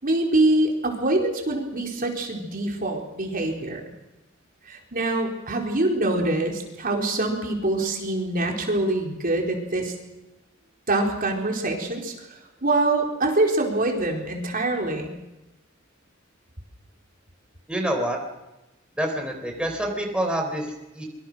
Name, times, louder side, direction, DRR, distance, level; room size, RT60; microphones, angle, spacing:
voice 1, 0.0-3.8 4.7-9.9 10.9-12.1 12.6-15.1, right 2 dB, 45° right, 1 dB, 4.3 m, -24 dB
voice 2, 17.7-18.2 19.0-21.0, right 1 dB, 5° right, 2 dB, 4.1 m, -27 dB
26.0 x 24.0 x 6.3 m, 1.0 s
head